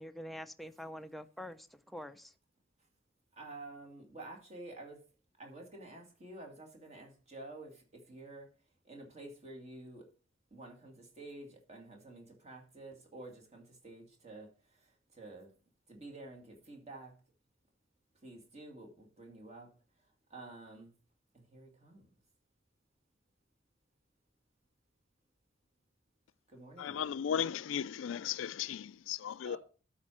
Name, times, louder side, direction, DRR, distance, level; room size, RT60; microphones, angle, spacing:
voice 1, 0.0-2.3, equal, ahead, 0.5 m, -46 dB
voice 2, 3.3-5.0 5.4-8.5 8.8-10.1 10.5-15.5 15.9-17.1 18.2-19.7 20.3-20.9 21.3-22.1 26.5-27.1 29.4-29.6, right 2 dB, 35° right, 2.2 m, -50 dB
voice 3, 26.8-29.6, left 8 dB, 75° left, 0.4 m, -36 dB
12.5 x 4.5 x 4.9 m
head